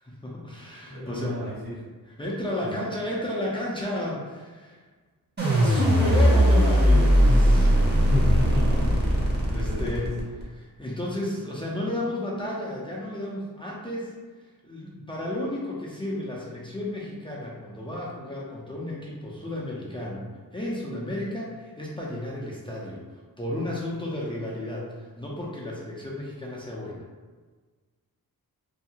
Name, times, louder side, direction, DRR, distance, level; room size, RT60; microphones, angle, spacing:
voice 1, 0.0-1.5 2.1-4.8 5.6-8.0 8.7-9.2 9.5-14.1 14.6-23.0 23.4-27.0, left 1 dB, 15° left, -5 dB, 0.4 m, -33 dB
voice 2, 0.9-1.6 2.6-2.7 7.8-8.9 9.6-10.0, equal, 60° right, -9 dB, 1.4 m, -31 dB
sound 1, 5.4-10.4, equal, 25° right, 0.7 m, -19 dB
2.7 x 2.3 x 2.8 m, 1.4 s
wide cardioid pair, 125°, 37 cm